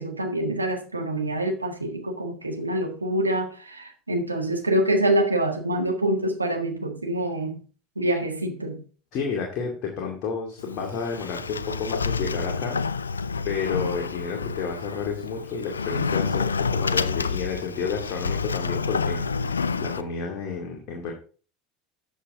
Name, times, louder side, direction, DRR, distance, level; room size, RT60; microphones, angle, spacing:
voice 1, 0.0-7.6 7.9-8.8, right 1 dB, 85° right, 1.6 m, -26 dB
voice 2, 9.1-12.8 13.1-13.2 13.4-21.1, left 5 dB, 45° left, 2.4 m, -31 dB
Sliding door, 10.6-20.0, left 5 dB, 80° left, 0.4 m, -28 dB
13.0 x 7.2 x 3.6 m
figure-of-eight pair, 75°, 0 cm